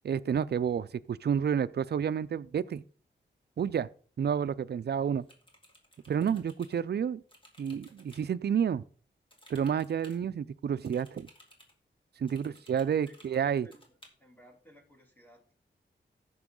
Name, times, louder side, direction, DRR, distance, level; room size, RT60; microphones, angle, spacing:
voice 1, 0.0-2.8 3.6-3.9 4.2-5.2 6.1-7.2 7.6-8.8 9.5-11.3 12.2-13.7, right 8 dB, 60° right, 0.4 m, -30 dB
sound 1, 5.2-6.8 7.3-8.3 9.3-10.2 10.8-11.7 12.3-13.4 13.7-14.1, equal, 25° left, 2.5 m, -58 dB
voice 2, 12.3-15.5, equal, 10° left, 3.0 m, -60 dB
15.0 x 6.2 x 3.7 m
wide cardioid pair, 90°, 19 cm